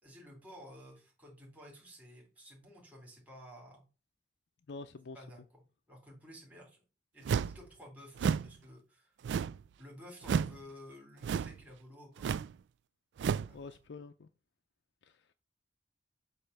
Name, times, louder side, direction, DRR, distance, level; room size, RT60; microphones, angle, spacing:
voice 1, 0.0-3.8 5.1-5.4 5.9-6.8 7.1-9.2 9.8-12.4 13.4-13.6, equal, 10° right, 2.9 m, -53 dB
voice 2, 4.7-5.2 13.5-14.3 15.0-15.2, left 3 dB, 80° left, 0.5 m, -47 dB
sound 1, 7.3-7.6 8.2-8.5 9.2-9.7 10.2-10.6 11.2-11.6 12.2-12.5 13.2-13.5, right 6 dB, 80° right, 0.3 m, -32 dB
7.9 x 3.0 x 5.6 m
head